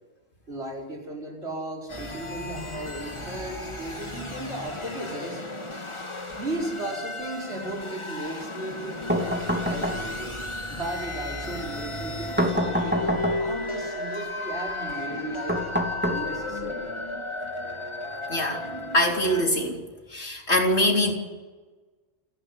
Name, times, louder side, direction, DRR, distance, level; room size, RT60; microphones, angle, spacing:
voice 1, 0.5-5.4 6.3-10.4 10.7-12.3 12.6-15.6 16.0-16.9, right 1 dB, 75° right, 0 dB, 5.0 m, -36 dB
sound 1, 1.9-19.4, left 2 dB, 25° left, 2.1 m, -34 dB
sound 2, 9.1-10.4 12.4-13.7 15.5-16.7, equal, 10° right, 2.8 m, -27 dB
voice 2, 18.3-18.6 18.9-19.8 20.1-21.1, left 1 dB, 80° left, 1 dB, 4.1 m, -23 dB
29.0 x 11.5 x 9.8 m, 1.3 s
omnidirectional pair, 1.1 m